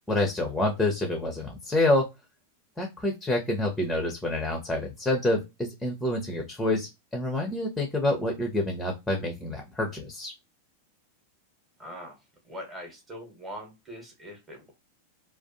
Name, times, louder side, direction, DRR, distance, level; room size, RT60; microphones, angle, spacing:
voice 1, 0.1-2.0 2.8-10.3, left 2 dB, 5° left, 3 dB, 0.5 m, -27 dB
voice 2, 11.8-12.2 12.4-14.7, equal, 10° right, 1 dB, 1.0 m, -42 dB
2.4 x 2.3 x 2.4 m, 0.23 s
figure-of-eight pair, 90°, 0 cm